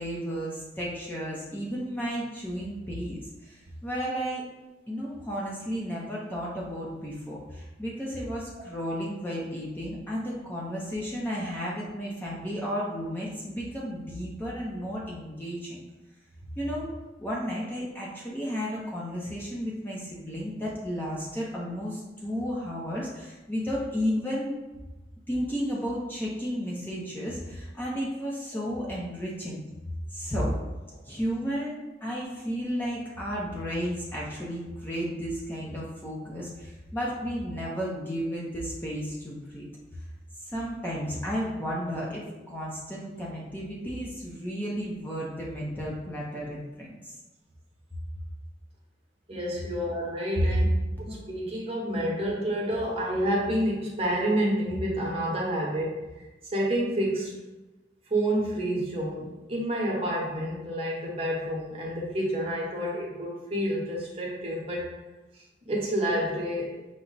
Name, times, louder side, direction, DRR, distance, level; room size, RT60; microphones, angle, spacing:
voice 1, 0.0-4.4 4.9-15.8 16.6-16.9 17.2-24.6 25.3-29.6 30.1-30.5 31.0-39.7 40.4-47.1, equal, 10° left, -5 dB, 0.6 m, -33 dB
voice 2, 49.3-50.6 51.0-57.5 58.1-64.9 65.3-66.7, right 1 dB, 30° right, -4 dB, 1.0 m, -29 dB
5.6 x 2.1 x 3.9 m, 1.1 s
head